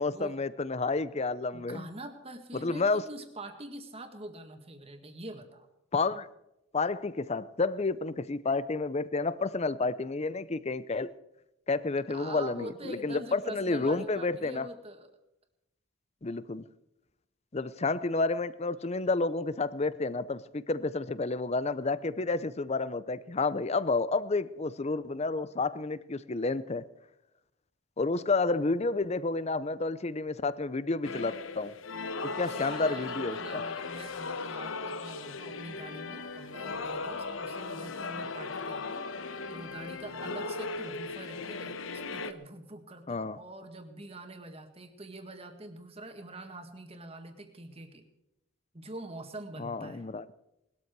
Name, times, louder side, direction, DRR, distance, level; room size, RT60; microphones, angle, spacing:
voice 1, 0.0-1.9 2.5-3.0 5.9-6.3 6.7-11.1 11.7-14.7 16.2-16.6 17.5-26.8 28.0-31.7 32.2-33.6 43.1-43.4 49.6-50.2, left 3 dB, 30° left, 16 dB, 0.6 m, -30 dB
voice 2, 1.5-5.7 12.1-15.1 32.3-39.1 39.5-48.0 48.7-50.1, right 1 dB, 30° right, 6 dB, 1.8 m, -45 dB
sound 1, 31.0-42.3, left 3 dB, 70° left, 0.9 m, -37 dB
19.5 x 13.0 x 4.7 m, 0.87 s
head